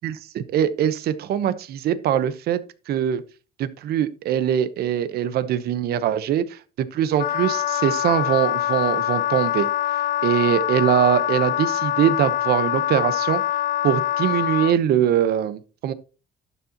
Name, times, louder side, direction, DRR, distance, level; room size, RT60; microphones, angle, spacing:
voice 1, 0.0-2.6 2.9-3.2 3.6-9.7 10.2-13.4 13.8-15.9, right 10 dB, 70° right, 0.9 m, -22 dB
Wind instrument woodwind instrument, 7.2-14.7, left 12 dB, 55° left, 0.5 m, -24 dB
12.0 x 7.1 x 2.9 m
cardioid pair, 110°, 17 cm